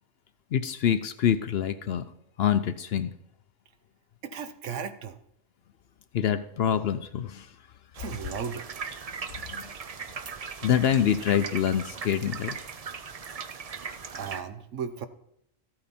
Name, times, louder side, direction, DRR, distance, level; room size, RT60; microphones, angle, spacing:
voice 1, 0.5-2.0 2.4-3.1 6.1-7.5 9.5-9.7 10.6-12.6, left 9 dB, 65° left, 12 dB, 0.7 m, -25 dB
voice 2, 4.2-5.2 8.0-8.7 14.1-15.1, right 7 dB, 70° right, 10 dB, 1.1 m, -35 dB
sound 1, 7.9-14.4, right 6 dB, 45° right, 0.5 m, -39 dB
14.0 x 8.7 x 4.3 m, 0.75 s
omnidirectional pair, 1.3 m